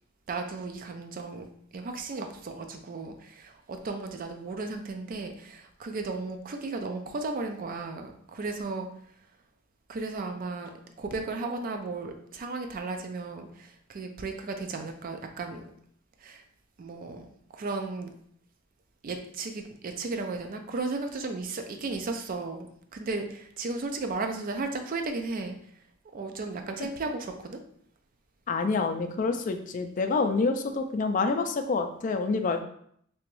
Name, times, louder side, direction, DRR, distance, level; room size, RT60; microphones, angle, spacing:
voice 1, 0.3-1.5 1.7-8.9 9.9-10.7 11.0-15.6 16.2-16.4 16.8-18.1 19.0-25.6 26.1-27.6, right 3 dB, 45° right, 5 dB, 0.4 m, -35 dB
voice 2, 28.5-32.6, left 4 dB, 40° left, 7 dB, 0.3 m, -27 dB
3.4 x 3.0 x 3.0 m, 0.66 s
head